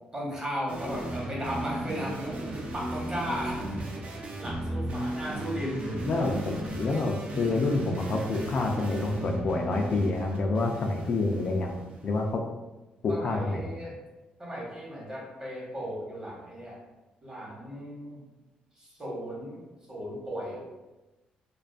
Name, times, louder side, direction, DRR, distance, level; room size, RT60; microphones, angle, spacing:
voice 1, 0.1-3.8 4.4-6.0 13.1-14.0 14.4-16.8 17.2-18.3 18.8-19.6 19.9-20.6, equal, 25° right, -4 dB, 1.0 m, -36 dB
sound 1, 0.7-12.2, right 1 dB, 50° right, 0.5 m, -36 dB
voice 2, 6.1-12.5 13.0-13.7, left 3 dB, 50° left, 1 dB, 0.3 m, -28 dB
2.4 x 2.3 x 2.4 m, 1.1 s
cardioid pair, 95°, 3 cm